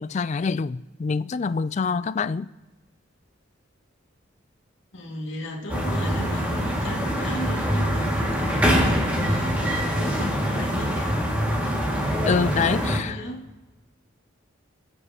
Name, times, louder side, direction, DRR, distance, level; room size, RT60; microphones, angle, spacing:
voice 1, 0.0-2.5 12.3-13.2, left 5 dB, 35° left, 0.3 m, -26 dB
voice 2, 4.9-11.3 12.6-13.4, left 1 dB, 65° left, 2.1 m, -35 dB
sound 1, 5.7-13.0, equal, 5° right, 2.0 m, -24 dB
23.5 x 8.3 x 2.9 m
head